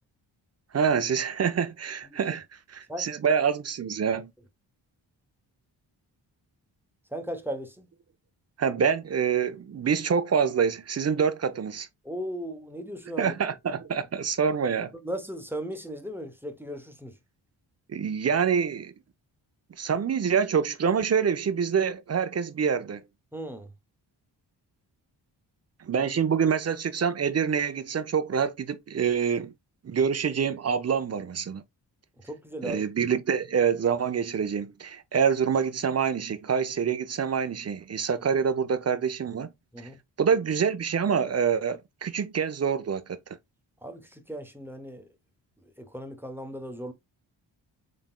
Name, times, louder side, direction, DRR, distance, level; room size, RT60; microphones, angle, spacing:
voice 1, 0.7-2.4 2.7-4.3 8.6-11.9 13.2-14.9 17.9-18.9 19.8-23.0 25.8-29.5 29.8-31.6 32.6-39.5 40.2-43.2, right 7 dB, 35° right, 0.6 m, -26 dB
voice 2, 7.1-7.9 12.0-13.3 14.9-17.2 23.3-23.7 32.2-32.8 39.7-40.0 43.8-45.1 45.6-46.9, right 1 dB, 5° right, 0.9 m, -37 dB
3.8 x 3.5 x 2.3 m
supercardioid pair, 45°, 47 cm